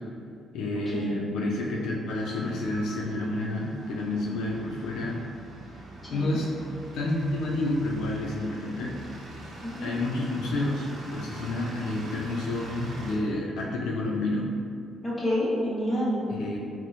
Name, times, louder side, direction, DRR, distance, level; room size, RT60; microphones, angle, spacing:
voice 1, 0.5-5.2 6.1-6.5 6.9-8.9 9.8-14.5 16.3-16.6, left 2 dB, 85° left, -3 dB, 0.3 m, -29 dB
sound 1, 2.2-13.2, right 1 dB, 75° right, 0.6 m, -44 dB
voice 2, 9.6-9.9 15.0-16.3, equal, 20° left, -7 dB, 1.0 m, -28 dB
4.3 x 2.0 x 2.5 m, 2.3 s
cardioid pair, 90°, 0 cm